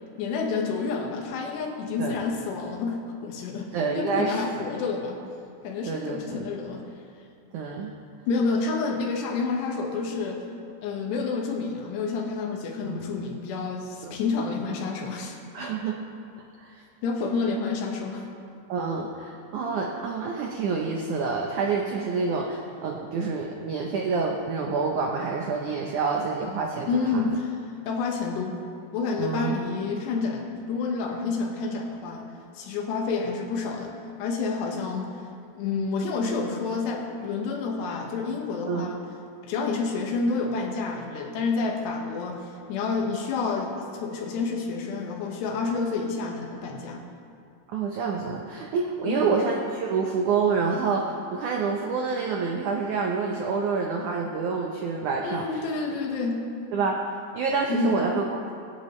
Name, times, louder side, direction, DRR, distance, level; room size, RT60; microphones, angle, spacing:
voice 1, 0.2-5.2 5.6-6.9 8.3-10.4 10.8-15.7 17.0-18.3 26.9-27.6 27.9-28.6 28.9-35.2 35.6-39.0 39.4-47.1 49.1-49.3 55.2-56.5 57.7-58.0, left 4 dB, 80° left, 1 dB, 3.5 m, -29 dB
voice 2, 3.7-4.4 5.9-6.4 7.5-7.9 12.8-13.1 14.0-14.1 15.5-16.0 16.6-16.8 18.7-27.2 29.2-29.6 38.7-38.9 47.7-55.6 56.7-57.0 57.3-58.5, right 5 dB, 85° right, 0 dB, 1.7 m, -27 dB
24.5 x 10.5 x 3.2 m, 2.4 s
omnidirectional pair, 4.9 m